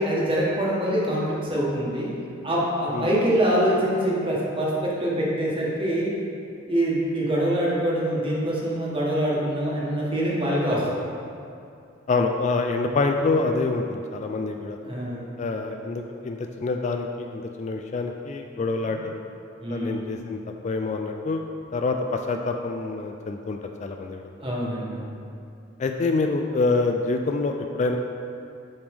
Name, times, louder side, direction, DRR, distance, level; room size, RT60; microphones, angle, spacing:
voice 1, 0.0-2.1 2.4-6.1 6.7-10.9 14.8-15.3 19.6-20.1 24.4-25.2, equal, 25° right, -5 dB, 1.3 m, -25 dB
voice 2, 12.1-14.8 15.4-19.2 19.7-21.4 21.7-24.2 25.8-28.0, left 3 dB, 35° left, 4 dB, 0.3 m, -26 dB
7.9 x 5.1 x 3.5 m, 2.5 s
head